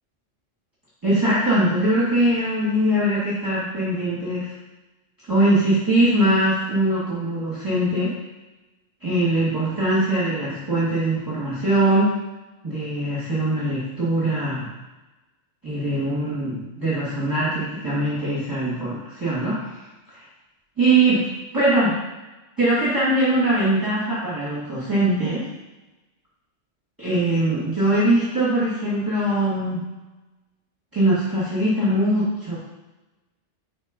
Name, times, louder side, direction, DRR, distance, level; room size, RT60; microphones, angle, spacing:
voice 1, 1.0-4.5 5.3-8.1 9.0-12.1 12.6-14.7 15.6-19.8 20.1-20.2 20.8-21.3 21.5-22.0 22.6-25.4 27.0-29.9 30.9-32.6, right 1 dB, 15° right, -10 dB, 2.5 m, -21 dB
5.2 x 5.0 x 5.3 m, 1.1 s
omnidirectional pair, 1.3 m